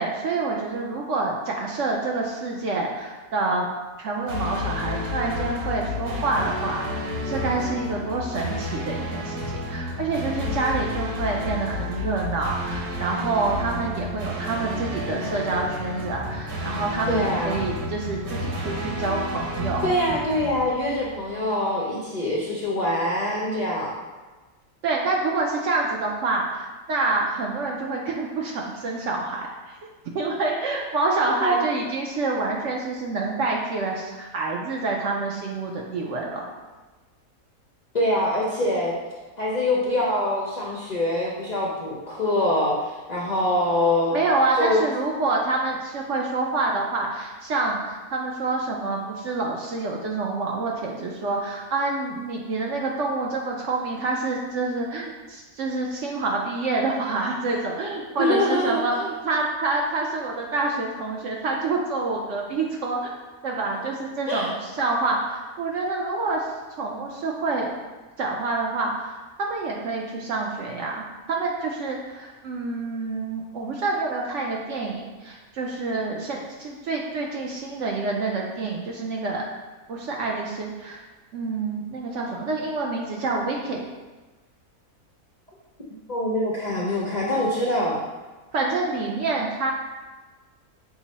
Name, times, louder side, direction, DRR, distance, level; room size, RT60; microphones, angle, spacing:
voice 1, 0.0-3.7 4.0-9.4 9.7-19.9 24.8-29.8 30.1-36.4 44.1-63.1 63.4-66.5 66.8-67.7 68.2-79.4 79.9-81.0 81.3-83.8 88.5-89.7, right 3 dB, 65° right, -1 dB, 0.7 m, -27 dB
sound 1, 4.3-21.3, left 1 dB, 90° right, 1.4 m, -31 dB
voice 2, 17.1-17.6 19.8-23.9 31.4-31.6 37.9-38.9 39.4-44.2 44.5-44.8 58.2-58.8 64.3-64.5 86.1-88.0, left 1 dB, 60° left, -5 dB, 0.4 m, -24 dB
5.9 x 2.0 x 4.0 m, 1.2 s
omnidirectional pair, 1.6 m